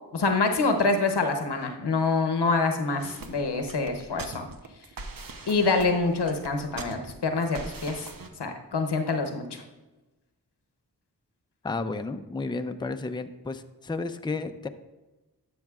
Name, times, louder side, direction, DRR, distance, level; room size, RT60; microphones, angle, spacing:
voice 1, 0.1-4.5 5.5-8.1 8.4-9.6, left 3 dB, 90° left, 5 dB, 0.9 m, -26 dB
sound 1, 3.0-8.3, right 3 dB, 60° right, 0.8 m, -41 dB
voice 2, 11.6-14.7, left 3 dB, 10° left, 8 dB, 0.4 m, -32 dB
12.0 x 6.3 x 2.4 m, 1.1 s
wide cardioid pair, 40°, 39 cm